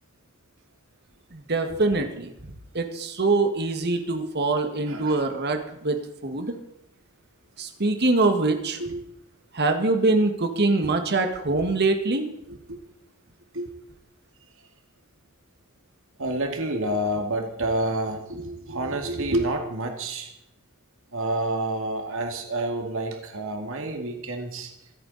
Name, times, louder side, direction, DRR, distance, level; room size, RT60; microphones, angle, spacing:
voice 1, 1.3-2.3 2.7-6.0 6.2-6.5 7.6-8.8 9.5-12.3, right 3 dB, 50° right, 6 dB, 1.8 m, -23 dB
voice 2, 4.9-5.2 8.8-9.0 11.5-11.6 12.5-12.8 13.5-13.7 16.2-20.3 21.1-24.7, right 1 dB, 65° right, 3 dB, 2.2 m, -29 dB
26.0 x 9.1 x 4.2 m, 0.80 s
head